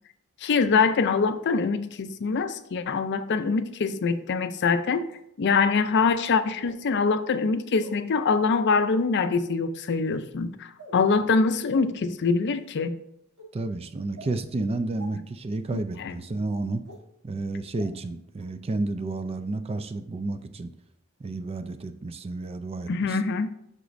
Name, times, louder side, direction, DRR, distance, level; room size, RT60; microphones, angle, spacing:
voice 1, 0.4-5.0 5.4-13.0 15.7-16.1 22.9-23.5, left 4 dB, 50° left, 11 dB, 0.4 m, -24 dB
sound 1, 4.0-4.2 5.0-5.1 6.5-6.8 7.8-8.0 8.7-9.0 9.9-10.2 10.8-11.0 11.7-11.8 12.4-12.7 13.4-13.5 14.1-14.3 15.0-15.1 15.9-16.0 16.8-17.0 17.8-17.9 18.4-18.5, right 1 dB, 85° right, 2.8 m, -46 dB
voice 2, 13.5-16.8 17.2-20.7 21.2-23.2, right 2 dB, 25° right, 10 dB, 0.4 m, -31 dB
8.0 x 6.0 x 2.6 m, 0.75 s
head